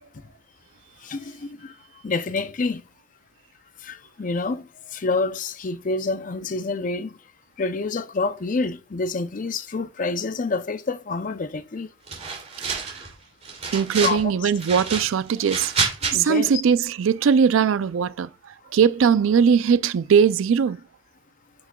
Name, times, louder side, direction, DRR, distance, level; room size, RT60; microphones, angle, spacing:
voice 1, 1.0-1.7 2.0-2.8 3.8-4.6 4.9-7.2 7.6-11.9 14.0-14.3 16.0-16.5, left 3 dB, 40° left, 0.5 m, -27 dB
sound 1, 12.1-13.1 13.4-14.2 14.6-16.1, right 5 dB, 35° right, 2.6 m, -28 dB
voice 2, 13.7-15.7 16.1-18.3 18.7-20.8, right 6 dB, 75° right, 0.4 m, -20 dB
8.4 x 6.0 x 2.2 m
head